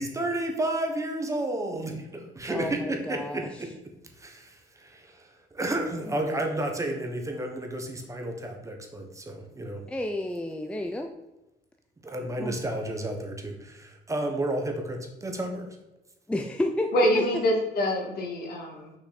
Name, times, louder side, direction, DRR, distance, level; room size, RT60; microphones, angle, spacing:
voice 1, 0.0-3.7 4.2-9.8 12.0-15.7, right 1 dB, 20° right, 3 dB, 1.2 m, -31 dB
voice 2, 2.5-3.5 6.1-6.2 9.9-11.1 12.4-12.6 16.3-17.2, left 1 dB, 5° left, 5 dB, 0.5 m, -31 dB
voice 3, 16.9-18.9, equal, 65° left, 0 dB, 2.3 m, -25 dB
6.1 x 5.5 x 4.2 m, 0.99 s
cardioid pair, 110°, 17 cm